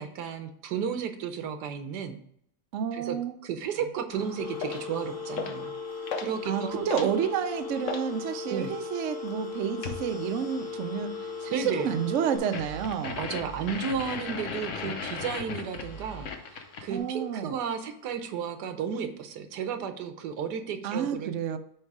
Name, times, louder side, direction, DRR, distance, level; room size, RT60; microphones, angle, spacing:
voice 1, 0.0-2.2 2.9-3.2 3.4-5.7 6.1-7.1 8.5-8.7 11.5-11.9 13.2-21.3, right 7 dB, 80° right, 8 dB, 1.4 m, -33 dB
voice 2, 2.7-3.4 6.4-13.2 16.9-17.6 20.8-21.6, right 8 dB, 65° right, 8 dB, 0.8 m, -30 dB
sound 1, 4.1-18.2, left 1 dB, 40° left, 2.6 m, -49 dB
Telephone, 4.4-12.4, left 6 dB, 80° left, 1.3 m, -38 dB
sound 2, 4.6-4.9 5.4-5.7 6.1-6.4 6.7-8.1 9.8-10.1 12.5-17.0, left 5 dB, 55° left, 1.0 m, -36 dB
8.8 x 3.3 x 4.7 m, 0.69 s
omnidirectional pair, 1.8 m